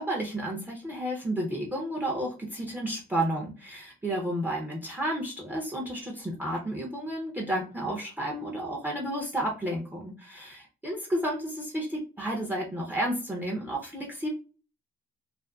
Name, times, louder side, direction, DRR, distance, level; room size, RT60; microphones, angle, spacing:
voice 1, 0.0-14.3, right 1 dB, 10° right, -1 dB, 0.5 m, -32 dB
2.4 x 2.3 x 2.2 m, 0.37 s
cardioid pair, 90°, 20 cm